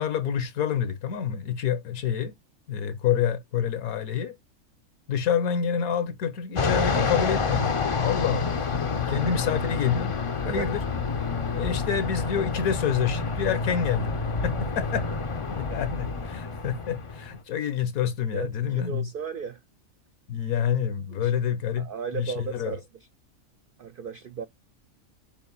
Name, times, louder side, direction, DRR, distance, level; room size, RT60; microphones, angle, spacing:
voice 1, 0.0-2.3 2.7-4.4 5.1-8.6 8.9-10.1 10.4-10.8 11.5-15.1 15.5-19.1 20.3-21.9 22.1-22.7, left 8 dB, 80° left, 1.4 m, -28 dB
Fixed-wing aircraft airplane, 6.6-17.4, left 4 dB, 50° left, 0.3 m, -28 dB
voice 2, 18.3-19.6 21.1-21.3 21.8-23.1 23.8-24.5, right 6 dB, 75° right, 0.5 m, -35 dB
7.0 x 2.5 x 5.4 m
omnidirectional pair, 1.5 m